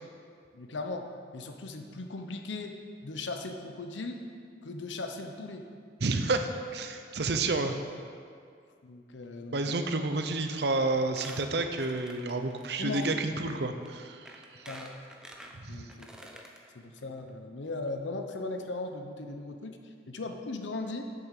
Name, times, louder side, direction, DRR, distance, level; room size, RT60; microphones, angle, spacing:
voice 1, 0.5-2.8 3.0-4.2 4.6-5.7 8.8-9.8 12.8-13.1 14.7-14.9 15.7-16.1 16.7-21.1, left 3 dB, 90° left, 5 dB, 0.8 m, -38 dB
voice 2, 6.0-7.8 9.5-14.6 15.5-15.8, right 3 dB, 65° right, 7 dB, 0.7 m, -30 dB
Squeak, 10.5-10.7 11.0-12.7 13.0-13.1 13.8-13.9 14.3-16.6 17.0-17.1 17.3-17.4, right 1 dB, 5° right, 0.7 m, -48 dB
8.6 x 7.0 x 6.6 m, 2.2 s
head